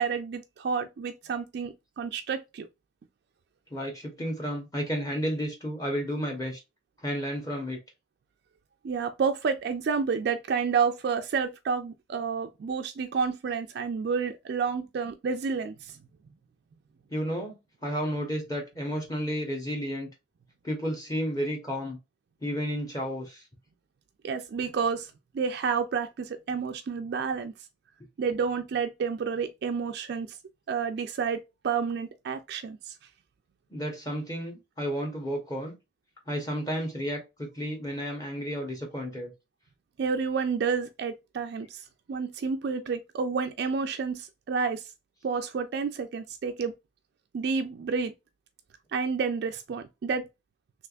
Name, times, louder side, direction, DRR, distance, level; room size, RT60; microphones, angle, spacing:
voice 1, 0.0-2.7 8.8-16.0 24.2-27.5 28.2-30.3 30.7-32.9 40.0-41.8 42.1-44.8 45.2-46.7 47.3-48.1 48.9-50.3, right 5 dB, 60° right, 0.3 m, -30 dB
voice 2, 3.7-6.6 7.0-7.8 17.1-17.5 17.8-20.1 20.6-22.0 22.4-23.4 33.7-35.7 36.3-39.3, equal, 20° left, 0.9 m, -32 dB
3.3 x 3.0 x 2.4 m
head